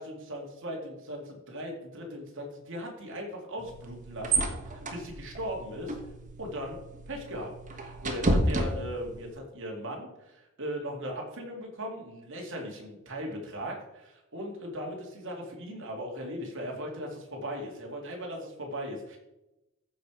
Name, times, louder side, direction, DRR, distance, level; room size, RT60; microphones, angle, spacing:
voice 1, 0.0-6.0 6.4-6.8 7.1-19.2, equal, 60° right, 0 dB, 2.5 m, -38 dB
sound 1, 3.6-9.3, right 1 dB, 35° right, 1.3 m, -32 dB
14.0 x 5.0 x 5.0 m, 0.95 s
head